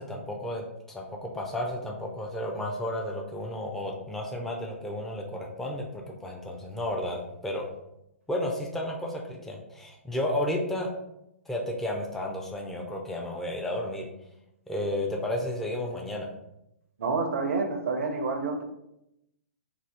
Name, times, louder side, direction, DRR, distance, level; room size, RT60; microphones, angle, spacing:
voice 1, 0.0-7.7 8.3-10.9 11.5-14.1 14.7-16.3, left 1 dB, 5° left, -1 dB, 0.4 m, -32 dB
voice 2, 17.0-18.6, right 4 dB, 70° right, 4 dB, 0.5 m, -28 dB
2.7 x 2.3 x 3.4 m, 0.84 s
hypercardioid pair, 125°, 7 cm